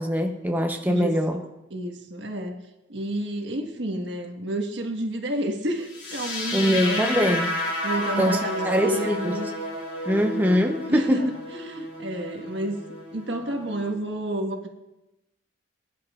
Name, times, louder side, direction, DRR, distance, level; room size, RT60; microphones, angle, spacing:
voice 1, 0.0-1.4 6.5-7.5 8.2-9.4 10.1-11.3, equal, 10° right, 3 dB, 0.7 m, -23 dB
voice 2, 0.8-2.6 2.9-7.5 7.8-9.5 10.9-12.8 13.1-14.7, right 1 dB, 75° right, 3 dB, 1.5 m, -30 dB
sound 1, 5.9-13.9, left 1 dB, 80° left, 5.1 m, -31 dB
21.0 x 10.5 x 2.4 m, 0.94 s
head